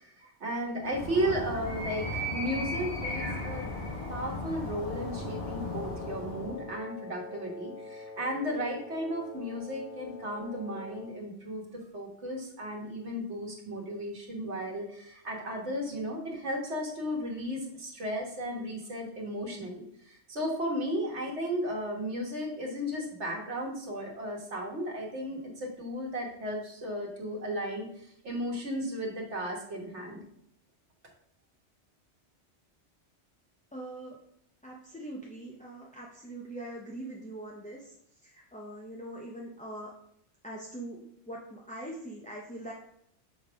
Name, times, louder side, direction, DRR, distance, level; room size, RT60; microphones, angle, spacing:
voice 1, 0.0-3.8 4.1-11.6 11.9-30.2, equal, 75° right, 0 dB, 1.7 m, -35 dB
Animal, 0.8-6.7, left 1 dB, 60° left, 3.0 m, -36 dB
Wind instrument woodwind instrument, 4.8-11.3, left 2 dB, 85° left, 1.2 m, -45 dB
voice 2, 33.7-34.2 34.6-37.9 38.2-39.9 40.4-42.7, right 1 dB, 10° left, -3 dB, 0.5 m, -42 dB
7.1 x 3.3 x 4.9 m, 0.74 s
omnidirectional pair, 1.2 m